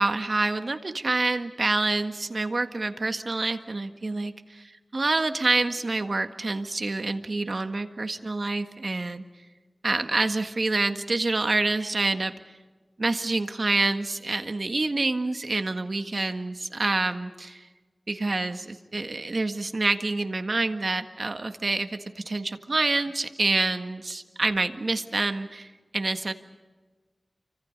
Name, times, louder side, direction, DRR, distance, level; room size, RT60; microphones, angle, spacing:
voice 1, 0.0-9.2 9.8-12.3 13.0-17.6 18.1-26.3, right 3 dB, 65° right, 8 dB, 1.6 m, -27 dB
29.0 x 25.5 x 5.3 m, 1.4 s
wide cardioid pair, 50°, 0 cm